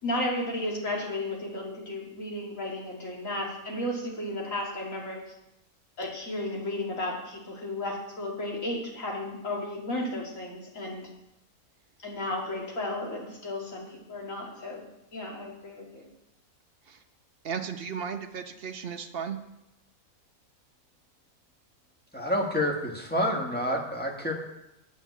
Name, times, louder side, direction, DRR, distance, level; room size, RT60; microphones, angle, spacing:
voice 1, 0.0-5.2 6.0-11.1 12.0-14.8 15.1-16.1, left 1 dB, 60° left, -2 dB, 2.7 m, -33 dB
voice 2, 17.4-19.4, right 7 dB, 50° right, 6 dB, 0.9 m, -35 dB
voice 3, 22.1-24.3, equal, 5° left, 0 dB, 1.4 m, -28 dB
9.0 x 6.5 x 8.3 m, 0.88 s
omnidirectional pair, 1.5 m